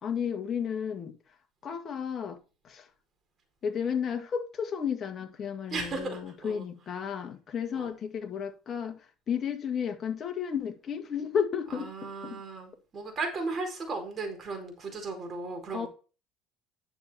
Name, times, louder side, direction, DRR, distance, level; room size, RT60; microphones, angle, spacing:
voice 1, 0.0-1.1 1.6-2.4 2.6-2.9 3.6-12.4 15.7-15.9, left 7 dB, 40° left, 2.0 m, -33 dB
voice 2, 5.7-6.6 7.7-7.9 11.7-15.9, right 3 dB, 35° right, 4.6 m, -36 dB
10.5 x 7.0 x 4.4 m
supercardioid pair, 105°, 0 cm